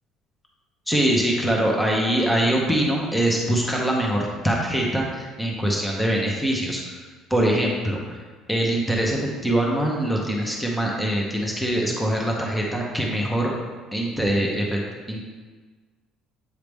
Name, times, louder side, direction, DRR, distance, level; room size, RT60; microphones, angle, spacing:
voice 1, 0.9-7.0 7.3-8.2 8.5-13.5 13.9-14.8 15.1-15.2, right 1 dB, 5° left, -2 dB, 0.8 m, -23 dB
8.1 x 4.8 x 3.4 m, 1.4 s
cardioid pair, 160°, 0 cm